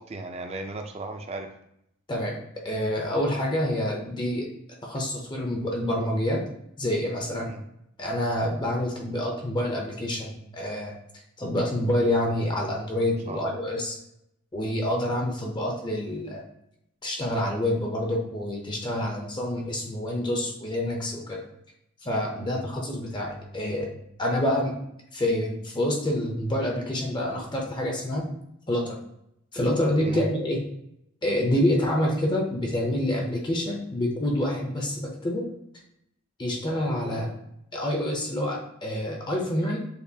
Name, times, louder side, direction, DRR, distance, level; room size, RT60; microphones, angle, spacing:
voice 1, 0.0-1.5 7.4-7.6 13.1-13.6 19.0-19.3 22.4-22.6 30.0-30.2, right 2 dB, 30° right, 4 dB, 0.4 m, -37 dB
voice 2, 2.6-4.5 4.8-6.4 6.8-7.5 8.0-14.0 14.5-16.4 17.0-21.4 22.0-24.7 25.1-28.3 28.7-29.0 29.5-30.6 31.2-35.4 36.4-37.3 37.7-39.8, left 1 dB, 20° left, 0 dB, 0.6 m, -27 dB
6.7 x 2.4 x 2.7 m, 0.78 s
head